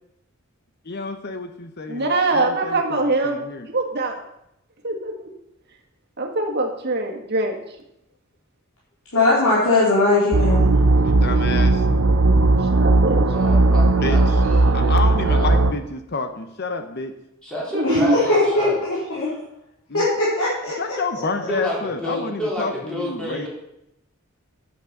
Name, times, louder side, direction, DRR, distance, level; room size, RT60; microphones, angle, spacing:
voice 1, 0.9-3.7 11.0-11.9 13.9-14.4 14.7-17.1 19.9-20.1 20.8-23.5, left 3 dB, 50° left, 7 dB, 0.9 m, -29 dB
voice 2, 1.9-4.1 4.8-5.3 6.2-7.6 12.7-13.2 17.7-18.2, right 2 dB, 50° right, 2 dB, 1.8 m, -23 dB
voice 3, 9.1-10.7 17.8-19.3 19.9-21.0, left 2 dB, 75° left, -8 dB, 3.6 m, -20 dB
sound 1, 10.3-15.7, right 2 dB, 80° right, 0.8 m, -17 dB
voice 4, 13.3-15.7 17.4-18.8 21.3-23.5, left 1 dB, 5° left, -5 dB, 3.8 m, -30 dB
9.0 x 8.3 x 6.7 m, 0.82 s
head